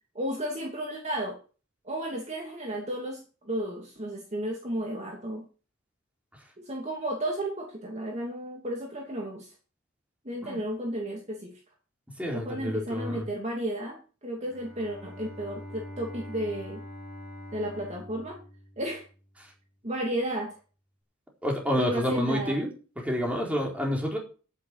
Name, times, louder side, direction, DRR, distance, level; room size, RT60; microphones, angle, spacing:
voice 1, 0.1-1.4 1.8-5.4 6.6-9.5 10.2-11.5 12.3-16.8 17.5-18.4 18.8-19.1 19.8-20.6 21.7-22.6, right 1 dB, 35° right, 1 dB, 2.7 m, -33 dB
voice 2, 12.2-13.2 21.4-22.7 23.0-24.2, equal, 5° right, 0 dB, 4.2 m, -28 dB
Bowed string instrument, 14.4-19.4, left 1 dB, 10° left, 5.4 m, -44 dB
9.9 x 9.8 x 6.6 m, 0.36 s
head